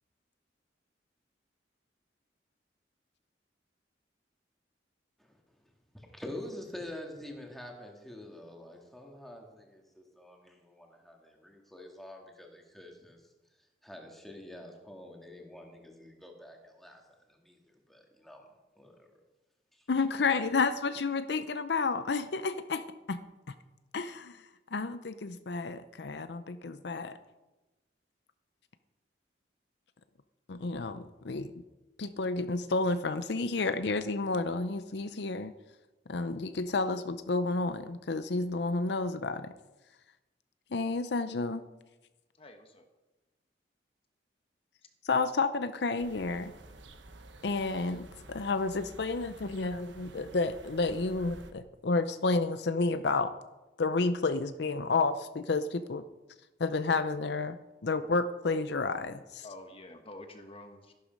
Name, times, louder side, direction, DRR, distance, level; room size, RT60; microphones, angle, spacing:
voice 1, 5.9-13.2 13.8-17.0 17.3-18.4 18.8-19.1 19.7-19.9, left 1 dB, ahead, 1 dB, 2.0 m, -47 dB
voice 2, 19.9-22.8 23.1-23.2 23.9-24.4 24.7-27.2 30.5-31.5 32.0-35.5 36.1-39.5 40.7-41.6 45.0-46.5 47.4-53.3 53.8-56.0 56.6-59.4, left 3 dB, 65° left, 11 dB, 0.6 m, -31 dB
voice 3, 42.4-42.8 59.4-60.9, left 1 dB, 30° left, 5 dB, 1.1 m, -48 dB
sound 1, 46.0-51.5, right 2 dB, 85° right, 1.2 m, -51 dB
13.5 x 11.5 x 5.3 m, 1.1 s
head